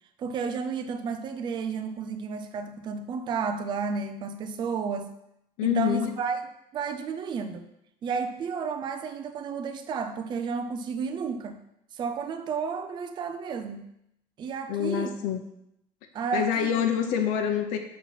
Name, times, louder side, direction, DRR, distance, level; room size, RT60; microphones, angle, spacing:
voice 1, 0.2-5.1 5.6-6.4 6.7-7.7 8.0-11.6 11.9-13.8 14.4-15.2 16.1-16.9, right 5 dB, 35° right, 7 dB, 0.5 m, -32 dB
voice 2, 5.6-6.1 14.7-15.4 16.3-17.8, left 9 dB, 85° left, 5 dB, 0.9 m, -26 dB
5.9 x 4.2 x 5.8 m, 0.79 s
cardioid pair, 160°, 14 cm